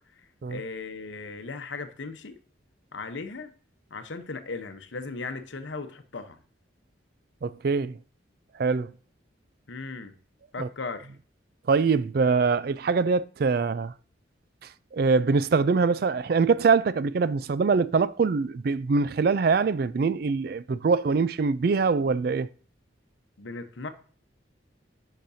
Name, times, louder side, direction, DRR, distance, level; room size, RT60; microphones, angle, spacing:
voice 1, 0.2-2.4 2.9-3.5 3.9-6.4 9.7-10.2 10.5-11.1 23.4-23.9, left 4 dB, 75° left, 0.8 m, -37 dB
voice 2, 7.4-8.0 8.6-8.9 10.6-10.7 11.7-13.9 14.9-22.5, right 4 dB, 50° right, 0.3 m, -23 dB
10.5 x 5.8 x 2.7 m
head